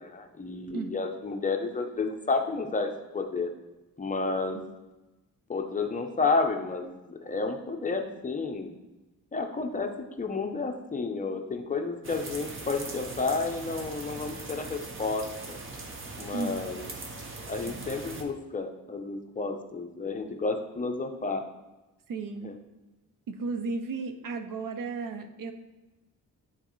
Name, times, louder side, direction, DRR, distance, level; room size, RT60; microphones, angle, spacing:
voice 1, 0.0-3.5 4.0-4.6 5.5-8.7 9.3-9.9 10.2-15.6 16.1-16.9 17.5-21.4 22.4-22.5, left 3 dB, 25° left, 4 dB, 0.6 m, -31 dB
sound 1, 12.0-18.2, right 3 dB, 35° right, 0.8 m, -40 dB
voice 2, 22.1-22.5 23.3-25.5, right 4 dB, 70° right, 8 dB, 0.6 m, -34 dB
9.4 x 4.1 x 3.0 m, 1.1 s
wide cardioid pair, 155°, 35 cm